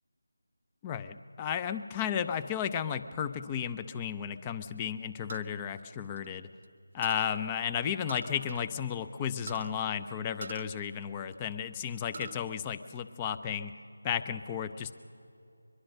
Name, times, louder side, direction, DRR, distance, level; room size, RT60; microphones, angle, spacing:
voice 1, 0.8-6.5 6.9-13.7 14.0-14.9, left 8 dB, 15° left, 11 dB, 0.5 m, -33 dB
sound 1, 5.3-6.7 7.0-7.4 8.1-8.7 9.0-9.1 9.5-9.7 10.4-11.5 11.9-12.4 12.8-13.6, right 4 dB, 40° right, 0.8 m, -45 dB
22.5 x 22.5 x 6.5 m, 2.7 s
figure-of-eight pair, 160°, 0 cm